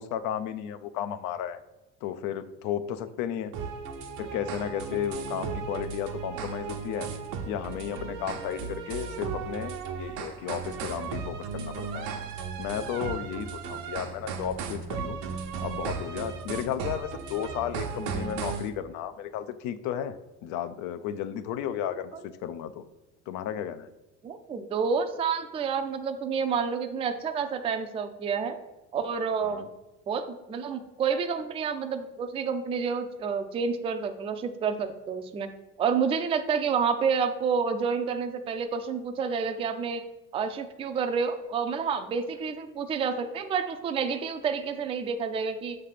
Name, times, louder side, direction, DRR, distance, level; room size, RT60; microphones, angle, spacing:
voice 1, 0.0-1.6 2.0-3.5 4.2-7.1 7.5-12.1 12.6-15.2 15.6-22.8 23.3-23.9 29.4-29.7, left 9 dB, 80° left, 12 dB, 0.5 m, -34 dB
sound 1, 3.5-18.7, right 6 dB, 90° right, 0.9 m, -35 dB
voice 2, 24.2-28.6 28.9-29.7 30.1-35.5 35.8-40.0 40.3-45.8, right 6 dB, 20° right, 7 dB, 0.3 m, -29 dB
6.7 x 3.3 x 5.6 m, 1.0 s
cardioid pair, 145°, 30 cm